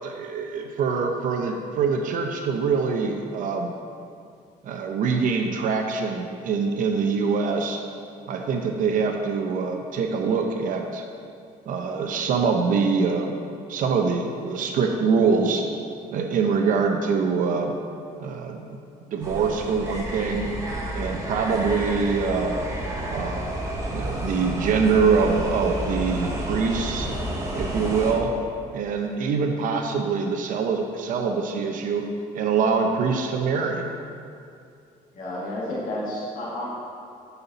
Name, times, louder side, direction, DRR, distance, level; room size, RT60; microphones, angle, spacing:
voice 1, 0.0-3.7 4.6-7.8 8.3-11.0 11.7-13.3 13.7-15.7 16.1-17.8 18.2-18.8 19.1-20.5 20.9-22.6 23.1-23.5 23.9-27.1 27.5-28.3 28.7-32.1 32.3-33.9, right 5 dB, 65° right, 3 dB, 0.8 m, -24 dB
sound 1, 19.2-28.1, right 1 dB, 20° right, 1.3 m, -30 dB
voice 2, 35.1-36.6, left 1 dB, 65° left, -5 dB, 2.1 m, -31 dB
10.5 x 5.7 x 4.1 m, 2.5 s
cardioid pair, 155°, 15 cm